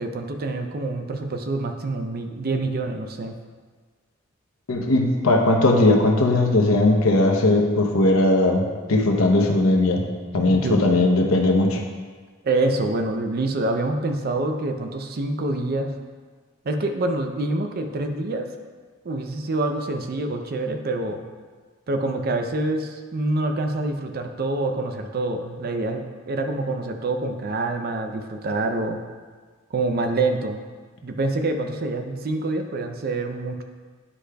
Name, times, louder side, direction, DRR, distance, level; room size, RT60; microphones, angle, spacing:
voice 1, 0.0-3.3 10.5-10.8 12.4-16.0 16.6-18.5 19.0-21.2 21.9-29.0 29.7-30.6 31.0-33.6, right 2 dB, 50° right, 5 dB, 0.5 m, -26 dB
voice 2, 4.7-10.0 10.3-11.8, left 2 dB, 90° left, 2 dB, 0.8 m, -18 dB
9.8 x 4.9 x 2.3 m, 1.5 s
head